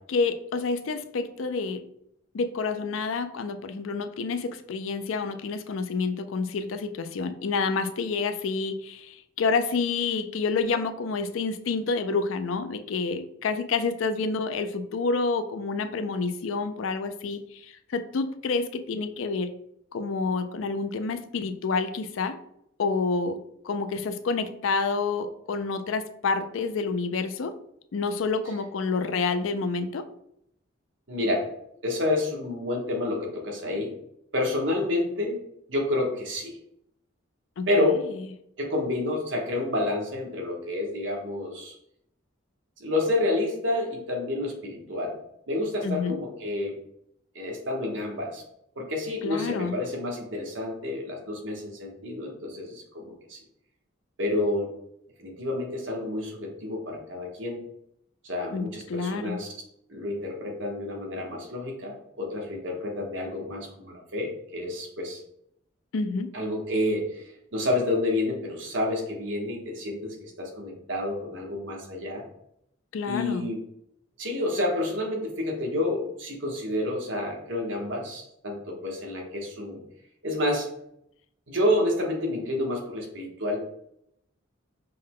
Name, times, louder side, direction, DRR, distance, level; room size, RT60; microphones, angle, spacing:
voice 1, 0.1-1.9 2.3-19.5 19.9-22.4 22.8-23.4 23.6-27.5 27.9-30.1 37.6-37.9 45.8-46.2 49.2-49.8 58.5-59.4 65.9-66.3 72.9-73.5, left 4 dB, 80° left, 10 dB, 0.4 m, -28 dB
voice 2, 31.1-31.4 31.8-33.9 34.3-35.4 35.7-36.5 37.7-38.0 38.6-41.7 42.8-45.1 45.5-46.8 47.3-48.4 48.8-53.4 54.2-54.7 55.2-57.6 58.2-59.5 59.9-65.2 66.3-67.2 67.5-72.2 73.1-73.6 74.2-79.8 80.2-80.7 81.5-83.6, left 1 dB, 70° right, 0 dB, 1.1 m, -29 dB
5.4 x 2.2 x 3.6 m, 0.75 s
head